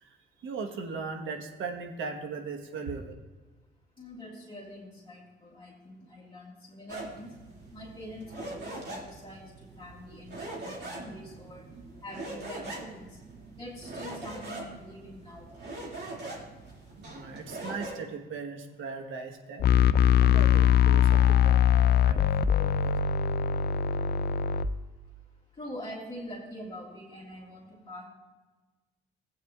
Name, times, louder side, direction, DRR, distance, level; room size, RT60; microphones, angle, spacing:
voice 1, 0.0-3.1 17.0-19.6 20.1-22.3 22.6-22.9, right 4 dB, 80° right, 5 dB, 1.2 m, -38 dB
voice 2, 4.0-7.3 7.7-11.7 12.0-13.2 13.5-15.5 25.5-28.0, left 1 dB, 25° left, -5 dB, 2.0 m, -44 dB
sound 1, 6.9-17.9, right 2 dB, 55° right, 2.3 m, -42 dB
sound 2, 19.6-24.7, left 9 dB, 55° left, 0.4 m, -22 dB
15.5 x 8.6 x 2.3 m, 1.2 s
cardioid pair, 90°, 20 cm